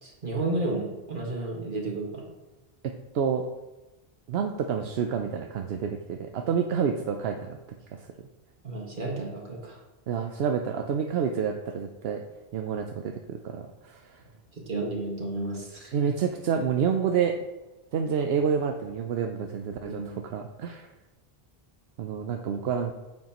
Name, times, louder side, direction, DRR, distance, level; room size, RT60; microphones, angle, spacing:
voice 1, 0.0-2.2 8.6-9.8 14.5-15.9 19.9-20.2 22.5-22.6, right 2 dB, 55° right, -1 dB, 1.9 m, -32 dB
voice 2, 3.1-3.5 4.3-7.6 7.9-8.0 10.1-12.2 12.5-14.2 15.9-17.4 17.9-20.9 22.0-22.9, right 7 dB, 80° right, 4 dB, 0.9 m, -28 dB
9.2 x 7.5 x 3.0 m, 1.1 s
omnidirectional pair, 1.0 m